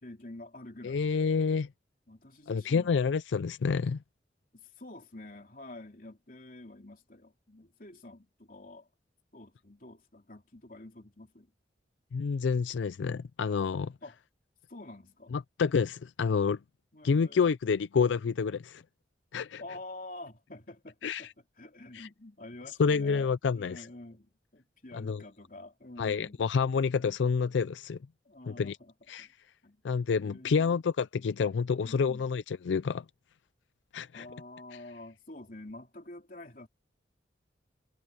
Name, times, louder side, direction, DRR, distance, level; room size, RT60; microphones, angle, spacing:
voice 1, 0.0-1.2 2.1-3.0 4.5-8.9 9.3-11.5 14.0-14.2 14.7-15.3 16.9-17.4 19.6-21.3 21.6-26.4 28.2-28.9 29.2-29.3 29.6-29.8 30.2-30.8 31.8-32.2 34.1-36.7, left 2 dB, 50° left, 3.4 m, -48 dB
voice 2, 0.8-1.7 2.5-4.0 12.1-13.9 15.3-16.6 17.0-18.8 19.3-19.6 21.0-21.3 21.9-22.1 22.8-23.9 24.9-25.2 26.0-28.0 28.5-28.8 29.1-29.3 29.8-33.0 33.9-34.3, left 5 dB, 90° left, 0.4 m, -28 dB
head